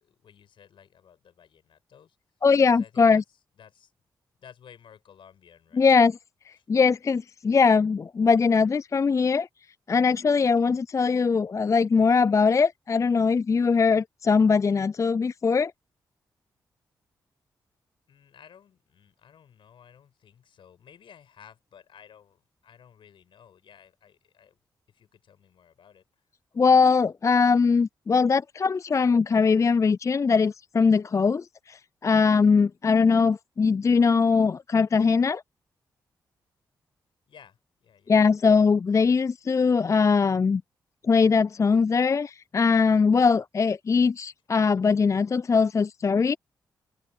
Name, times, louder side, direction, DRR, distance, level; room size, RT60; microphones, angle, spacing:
voice 1, 0.0-2.2 2.6-3.2 3.6-3.9 4.3-6.0 6.6-6.7 18.1-24.6 24.9-26.3 37.3-38.2, left 8 dB, 70° left, 7.1 m, -54 dB
voice 2, 2.4-3.2 5.8-6.1 6.7-9.5 9.9-15.7 26.6-35.4 38.1-40.6 41.1-46.4, left 5 dB, 35° left, 0.4 m, -21 dB
supercardioid pair, 40°, 9 cm